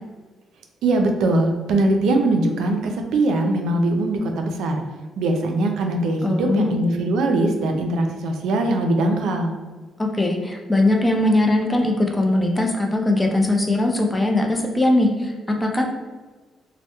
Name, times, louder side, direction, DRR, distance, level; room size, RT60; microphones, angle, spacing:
voice 1, 0.8-4.8 5.2-9.5, right 2 dB, 80° right, 3 dB, 0.3 m, -21 dB
voice 2, 6.2-6.7 10.0-15.8, left 1 dB, 15° left, 2 dB, 0.4 m, -20 dB
2.1 x 2.0 x 2.8 m, 1.3 s
cardioid pair, 90°, 0 cm